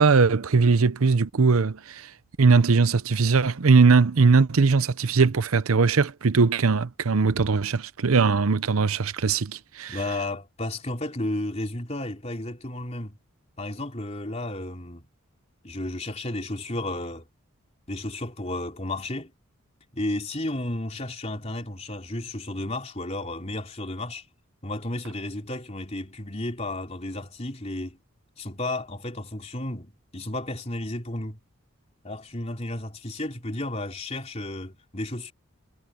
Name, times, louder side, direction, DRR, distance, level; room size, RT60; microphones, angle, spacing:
voice 1, 0.0-2.1 2.4-10.0, right 4 dB, 80° right, 0.7 m, -20 dB
voice 2, 9.9-13.2 13.6-15.1 15.6-17.2 17.9-19.3 19.9-24.2 24.6-28.0 28.4-31.4 32.0-35.3, left 1 dB, 30° left, 3.6 m, -33 dB
head